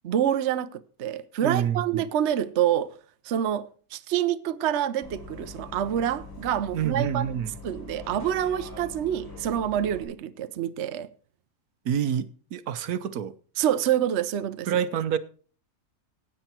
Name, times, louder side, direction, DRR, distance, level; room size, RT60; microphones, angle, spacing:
voice 1, 0.0-2.9 3.2-7.4 7.6-11.1 13.6-14.8, right 10 dB, 55° right, 0.8 m, -27 dB
voice 2, 1.4-2.1 6.7-7.5 11.8-13.3 14.7-15.2, right 9 dB, 75° right, 1.2 m, -27 dB
Bus, 5.0-10.0, left 3 dB, 15° left, 4.4 m, -43 dB
16.0 x 8.9 x 4.4 m
omnidirectional pair, 1.6 m